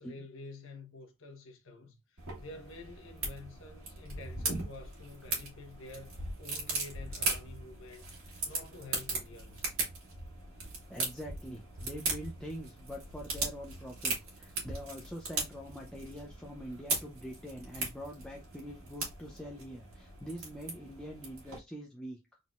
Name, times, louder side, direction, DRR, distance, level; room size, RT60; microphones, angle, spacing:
voice 1, 0.0-8.1 8.4-9.7 10.6-10.7, left 2 dB, 65° left, 1.2 m, -49 dB
sound 1, 2.2-21.6, right 3 dB, 80° right, 2.0 m, -39 dB
voice 2, 10.9-22.4, equal, 5° left, 0.5 m, -44 dB
3.9 x 3.9 x 2.3 m
head